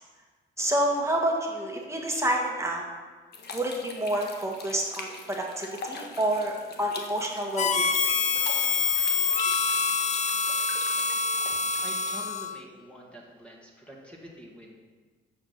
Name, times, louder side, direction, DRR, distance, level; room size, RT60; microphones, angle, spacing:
voice 1, 0.6-2.8 3.5-7.9, right 1 dB, 15° right, 0 dB, 1.8 m, -28 dB
sound 1, 3.3-12.3, left 4 dB, 55° left, 1.5 m, -43 dB
Harmonica, 7.6-12.6, left 5 dB, 35° left, 0.7 m, -26 dB
voice 2, 11.8-14.7, equal, 5° left, -3 dB, 2.1 m, -46 dB
8.9 x 7.3 x 5.9 m, 1.4 s
cardioid pair, 90°, 20 cm